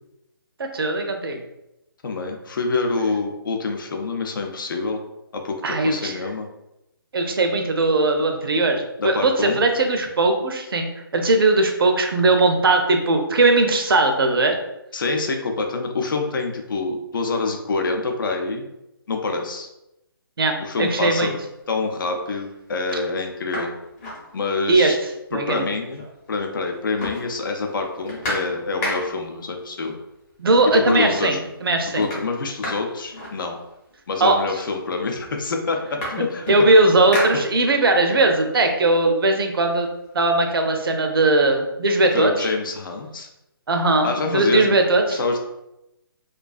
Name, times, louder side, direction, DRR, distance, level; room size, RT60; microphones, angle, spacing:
voice 1, 0.6-1.4 5.6-6.2 7.1-14.5 20.4-21.3 24.7-24.9 25.3-25.6 30.4-32.1 34.2-34.4 36.5-39.9 40.1-42.5 43.7-45.2, right 2 dB, 70° right, 4 dB, 0.5 m, -19 dB
voice 2, 2.0-5.0 5.3-6.5 9.0-9.6 14.9-18.7 19.1-19.7 20.6-21.3 21.7-23.7 24.3-25.0 25.3-26.0 26.3-30.0 30.6-31.4 31.9-33.5 34.1-36.5 42.1-43.3 44.0-44.7 45.1-45.4, left 3 dB, 60° left, 3 dB, 0.5 m, -26 dB
sound 1, 21.4-21.8 22.3-22.4 22.8-24.9 25.2-25.3 25.5-26.4 26.6-29.4 30.3-30.4 30.8-31.3 31.5-34.0 34.8-34.9 35.2-38.0 38.4-40.1, left 1 dB, 20° left, 0.7 m, -34 dB
2.3 x 2.3 x 2.3 m, 0.89 s
figure-of-eight pair, 145°, 12 cm